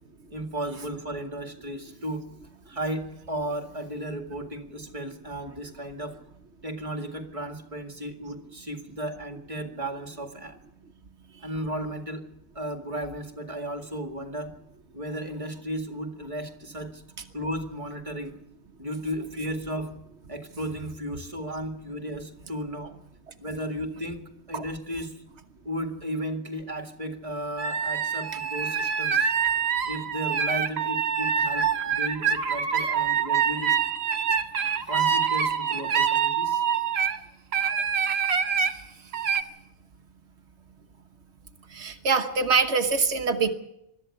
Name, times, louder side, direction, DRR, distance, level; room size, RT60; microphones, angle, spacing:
voice 1, 0.3-2.3 2.7-6.2 6.6-10.6 11.4-12.3 12.5-14.5 14.9-17.0 17.3-18.4 18.8-20.0 20.3-23.0 23.4-25.2 25.6-29.3 29.9-33.8 34.7-36.6, right 1 dB, 30° right, 6 dB, 2.0 m, -34 dB
sound 1, 27.6-37.2 37.5-38.7 39.1-39.4, right 7 dB, 70° right, 1.3 m, -25 dB
voice 2, 41.7-43.5, right 4 dB, 85° right, 6 dB, 1.5 m, -24 dB
21.5 x 13.0 x 9.7 m, 0.81 s
omnidirectional pair, 1.1 m